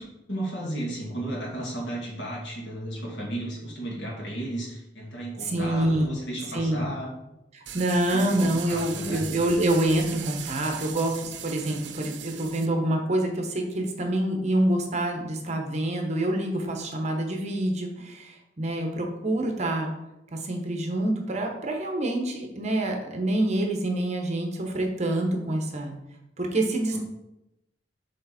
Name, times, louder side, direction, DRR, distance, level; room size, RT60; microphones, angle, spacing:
voice 1, 0.0-7.1 8.1-9.2 26.9-27.0, right 1 dB, 85° left, -2 dB, 1.9 m, -34 dB
voice 2, 5.4-6.1 6.5-6.9 7.5-19.9 20.3-25.9 26.4-27.0, right 1 dB, 40° right, 3 dB, 0.9 m, -26 dB
sound 1, 7.7-12.7, right 9 dB, 85° right, 0.6 m, -39 dB
6.5 x 3.5 x 4.2 m, 0.90 s
head